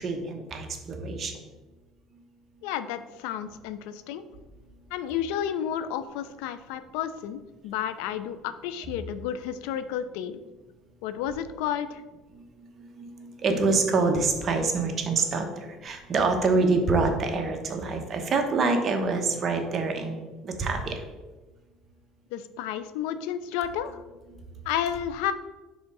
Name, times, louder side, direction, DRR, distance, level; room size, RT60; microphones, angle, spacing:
voice 1, 0.0-1.3 12.3-12.4 12.8-20.9, right 3 dB, 35° right, 4 dB, 1.0 m, -26 dB
voice 2, 2.6-4.2 4.9-10.4 11.0-11.9 22.3-23.9 24.7-25.3, left 9 dB, 85° left, 12 dB, 0.4 m, -31 dB
4.9 x 3.6 x 5.3 m, 1.2 s
cardioid pair, 115°, 0 cm